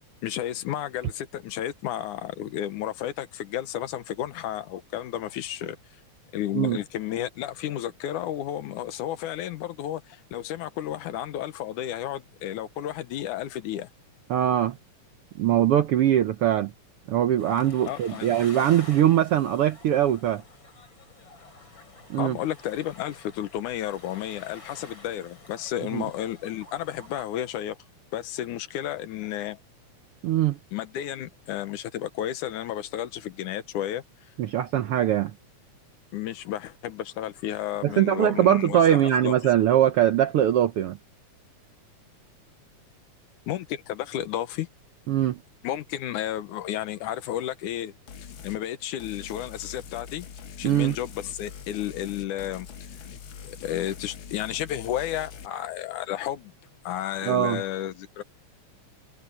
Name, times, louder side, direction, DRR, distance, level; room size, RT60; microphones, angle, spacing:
voice 1, 0.2-5.8 6.3-13.9 17.9-18.4 22.2-27.8 28.1-29.6 30.7-34.0 36.1-39.3 43.5-44.7 45.6-47.9 48.4-50.3 50.6-52.7 53.4-56.5 56.8-58.2, left 12 dB, 85° left, 2.5 m, -32 dB
voice 2, 14.3-14.8 15.4-16.7 17.1-20.4 22.1-22.4 25.9-26.0 30.2-30.6 34.4-35.3 37.8-41.0 45.1-45.4 50.6-51.0 57.3-57.6, right 11 dB, 70° right, 1.4 m, -22 dB
sound 1, 17.4-27.2, left 3 dB, 40° left, 4.9 m, -49 dB
sound 2, 48.1-48.6 49.0-55.5, left 7 dB, 55° left, 1.5 m, -43 dB
omnidirectional pair, 3.5 m